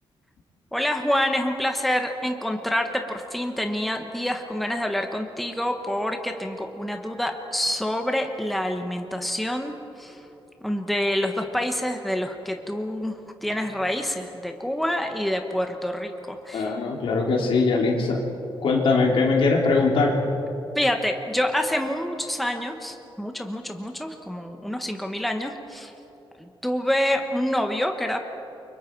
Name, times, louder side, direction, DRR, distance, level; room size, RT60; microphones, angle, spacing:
voice 1, 0.7-10.2 10.6-16.7 20.8-25.9 26.4-28.2, left 1 dB, ahead, 4 dB, 1.1 m, -27 dB
voice 2, 16.5-18.2 18.6-20.2, left 3 dB, 70° left, 0 dB, 3.1 m, -21 dB
29.5 x 24.0 x 4.6 m, 2.9 s
wide cardioid pair, 150°, 9 cm